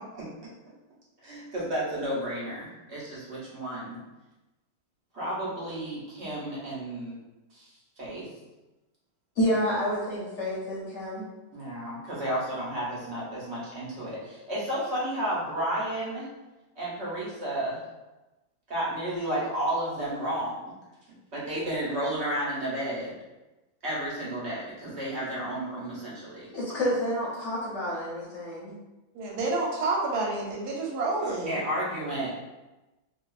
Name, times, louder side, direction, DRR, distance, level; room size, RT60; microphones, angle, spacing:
voice 1, 1.2-4.0 5.1-7.2 7.5-7.7 8.0-8.2 11.5-16.3 16.8-17.8 18.7-20.7 21.3-23.2 23.8-26.5 31.2-32.3, right 1 dB, 50° right, -7 dB, 0.9 m, -32 dB
voice 2, 9.4-11.3 26.5-28.8, equal, 55° left, -7 dB, 0.9 m, -29 dB
voice 3, 29.1-31.6, right 3 dB, 90° right, -1 dB, 1.2 m, -29 dB
2.6 x 2.3 x 2.3 m, 1.0 s
omnidirectional pair, 1.7 m